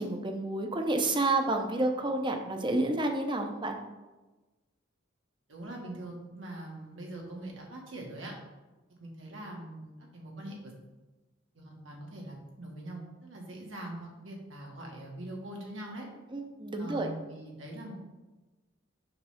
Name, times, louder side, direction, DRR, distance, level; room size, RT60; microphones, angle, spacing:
voice 1, 0.0-3.8 16.3-17.1, right 2 dB, 25° right, 4 dB, 0.7 m, -29 dB
voice 2, 5.5-8.3 9.0-10.7 11.6-16.1 16.8-18.0, right 1 dB, 75° right, -1 dB, 1.7 m, -43 dB
6.8 x 3.3 x 5.7 m, 1.2 s
head